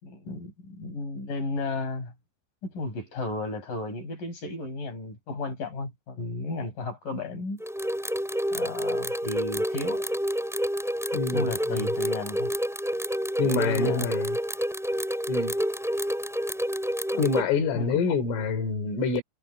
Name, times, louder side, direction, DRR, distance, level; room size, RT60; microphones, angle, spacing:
voice 1, 0.0-2.1 2.6-7.6 8.5-10.1 11.3-12.5 13.4-14.1 17.1-17.3 17.7-17.9, left 2 dB, 45° left, 9.3 m, -33 dB
sound 1, 7.6-17.4, equal, ahead, 4.8 m, -28 dB
voice 2, 11.1-11.9 13.4-14.4 15.3-15.5 17.2-19.2, left 4 dB, 85° left, 6.6 m, -27 dB
omnidirectional pair, 5.6 m